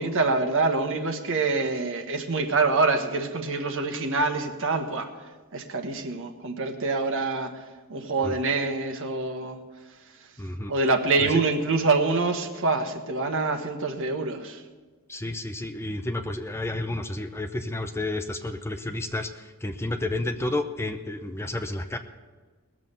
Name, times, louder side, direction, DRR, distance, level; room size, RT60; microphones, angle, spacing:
voice 1, 0.0-5.1 5.5-7.5 7.9-9.6 10.7-14.6, right 3 dB, 60° right, 6 dB, 1.4 m, -25 dB
voice 2, 10.4-10.7 11.2-11.4 15.1-22.0, left 2 dB, 10° left, 7 dB, 0.6 m, -31 dB
19.5 x 7.6 x 6.8 m, 1.4 s
head